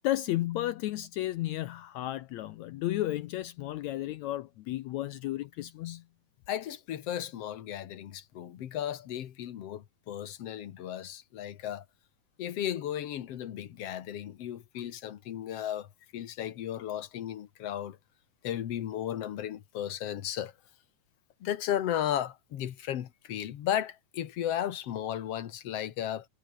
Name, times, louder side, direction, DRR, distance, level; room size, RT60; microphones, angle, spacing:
voice 1, 0.0-6.0, left 15 dB, 75° left, 1.8 m, -33 dB
voice 2, 6.5-11.9 12.4-15.9 16.1-18.0 18.4-20.5 21.4-26.3, left 11 dB, 60° left, 2.0 m, -35 dB
omnidirectional pair, 3.7 m